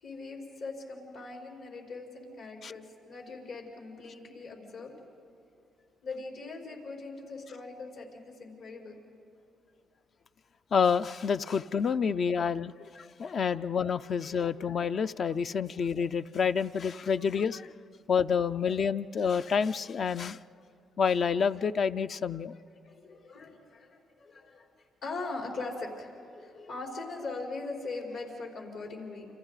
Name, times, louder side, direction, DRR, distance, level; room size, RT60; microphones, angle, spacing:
voice 1, 0.0-5.0 6.0-9.0 22.5-24.6 25.0-29.3, left 3 dB, 75° left, -1 dB, 4.8 m, -41 dB
voice 2, 10.7-17.7 18.1-20.4 21.0-22.5, left 6 dB, 50° left, 12 dB, 0.4 m, -28 dB
29.5 x 26.5 x 4.0 m, 2.6 s
cardioid pair, 90°, 0 cm